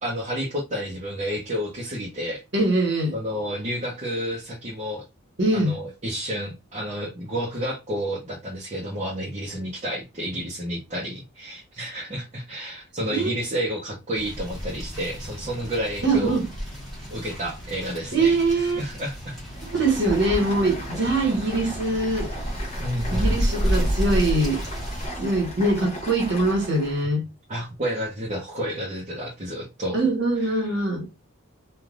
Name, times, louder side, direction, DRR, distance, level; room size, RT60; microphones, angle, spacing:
voice 1, 0.0-2.4 3.1-5.0 5.5-16.4 17.1-19.4 22.8-23.4 27.5-30.0 30.4-30.8, equal, 30° right, 0.7 m, -30 dB
voice 2, 2.5-3.1 5.4-5.7 13.1-13.3 16.0-16.5 18.1-18.8 19.6-22.3 23.1-24.6 25.2-27.2 29.9-31.1, right 2 dB, 55° right, 1.1 m, -22 dB
sound 1, 14.1-25.1, equal, ahead, 0.9 m, -31 dB
Stream, 19.5-27.1, equal, 30° left, 0.7 m, -35 dB
3.2 x 2.4 x 2.4 m
head